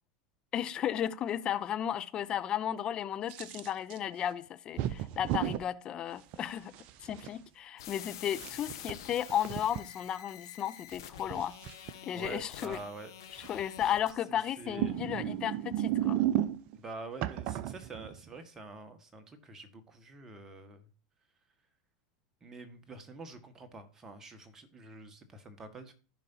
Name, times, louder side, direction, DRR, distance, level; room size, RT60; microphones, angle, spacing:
voice 1, 0.5-6.7 7.0-11.6 12.0-12.8 13.5-16.2, left 10 dB, 35° left, 0.7 m, -34 dB
sound 1, 3.3-4.0 4.8-5.6 6.3-7.3 8.3-9.8 10.9-11.9 13.4-13.8 14.6-16.8 17.2-18.3, right 12 dB, 50° right, 0.6 m, -34 dB
sound 2, 7.8-14.1, left 10 dB, 70° left, 1.1 m, -48 dB
voice 2, 12.1-13.1 13.8-13.9 14.3-14.9 16.7-20.9 22.4-25.9, right 3 dB, 20° right, 1.7 m, -47 dB
15.0 x 5.2 x 2.8 m
hypercardioid pair, 85°, 2 cm